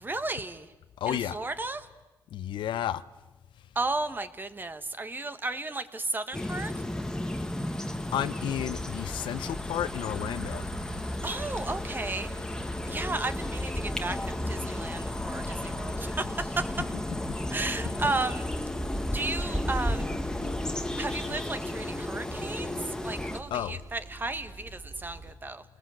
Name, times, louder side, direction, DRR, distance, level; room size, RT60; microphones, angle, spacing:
voice 1, 0.0-0.7 1.0-1.9 3.7-6.7 11.2-12.3 12.9-16.7 17.5-18.5 19.1-20.1 21.0-22.8 23.0-25.6, right 2 dB, 25° right, 1.7 m, -34 dB
voice 2, 1.0-1.4 2.3-3.0 8.1-10.6 23.5-23.8, left 11 dB, 85° left, 0.8 m, -31 dB
sound 1, 6.3-23.4, left 1 dB, 10° left, 1.6 m, -34 dB
sound 2, 8.4-21.4, left 3 dB, 45° left, 2.0 m, -42 dB
sound 3, 10.1-25.3, right 3 dB, 50° right, 3.7 m, -49 dB
29.5 x 20.0 x 8.0 m
cardioid pair, 85°, 8 cm